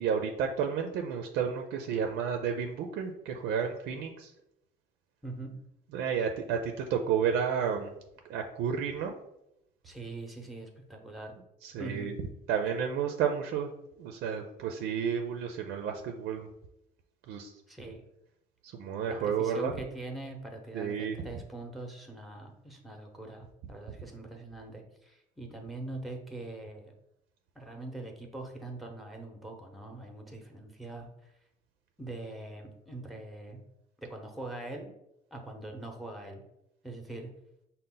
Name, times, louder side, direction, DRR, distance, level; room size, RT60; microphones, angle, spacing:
voice 1, 0.0-4.3 5.9-7.9 8.3-9.1 11.6-12.1 12.5-13.7 14.0-16.5 17.3-17.5 18.7-19.7 20.7-21.2, right 7 dB, 80° right, 5 dB, 0.4 m, -31 dB
voice 2, 5.2-5.6 9.8-11.3 11.8-12.1 17.7-18.0 19.1-26.9 27.5-31.3 32.0-33.6 34.0-34.9 35.3-36.4 36.8-37.3, right 2 dB, ahead, 2 dB, 0.8 m, -42 dB
5.2 x 2.1 x 3.8 m, 0.84 s
cardioid pair, 110°, 17 cm